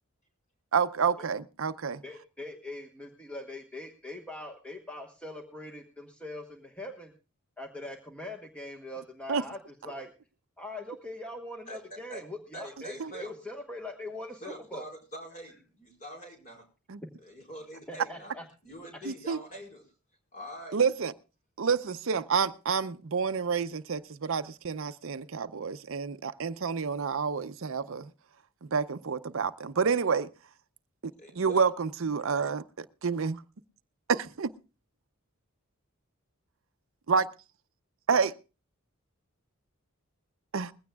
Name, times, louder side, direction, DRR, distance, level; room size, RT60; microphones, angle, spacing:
voice 1, 0.7-2.0 9.3-9.4 13.0-13.1 16.9-17.0 19.1-19.4 20.7-21.1 21.6-28.1 28.7-30.3 31.4-33.4 34.1-34.5 37.1-37.3 38.1-38.3 40.5-40.7, right 5 dB, 65° right, 0.6 m, -29 dB
voice 2, 2.0-7.1 7.6-10.1 10.6-14.8 17.9-18.4, left 1 dB, 5° left, 1.2 m, -42 dB
voice 3, 11.7-12.2 12.5-13.3 14.4-16.7 17.2-18.3 18.6-19.9 20.3-20.8 31.2-31.6, right 1 dB, 40° left, 4.9 m, -44 dB
20.5 x 15.5 x 2.3 m
head